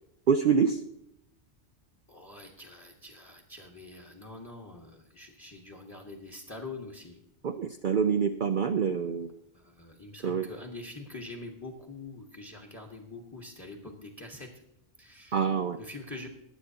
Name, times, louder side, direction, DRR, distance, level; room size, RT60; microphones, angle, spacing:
voice 1, 0.3-0.8 7.4-9.3 10.2-10.5 15.3-15.8, right 6 dB, 55° right, 7 dB, 0.6 m, -26 dB
voice 2, 2.1-7.2 9.8-14.5 15.0-15.4 15.8-16.3, left 2 dB, 15° left, 1 dB, 1.3 m, -44 dB
20.5 x 8.1 x 2.8 m, 0.81 s
omnidirectional pair, 1.3 m